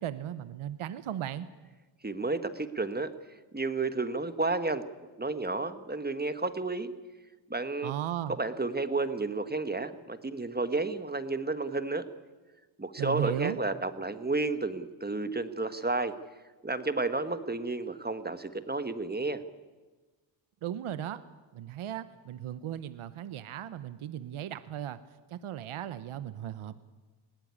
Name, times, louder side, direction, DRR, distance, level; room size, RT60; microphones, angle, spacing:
voice 1, 0.0-1.5 7.8-8.4 13.0-13.6 20.6-21.2 21.5-25.0 25.3-26.8, right 11 dB, 80° right, 13 dB, 1.0 m, -36 dB
voice 2, 2.0-3.1 3.5-4.8 5.2-6.9 7.5-7.9 8.4-12.1 12.8-16.1 16.6-19.4, right 3 dB, 20° right, 10 dB, 1.5 m, -31 dB
20.5 x 17.5 x 9.8 m, 1.2 s
cardioid pair, 75°, 50 cm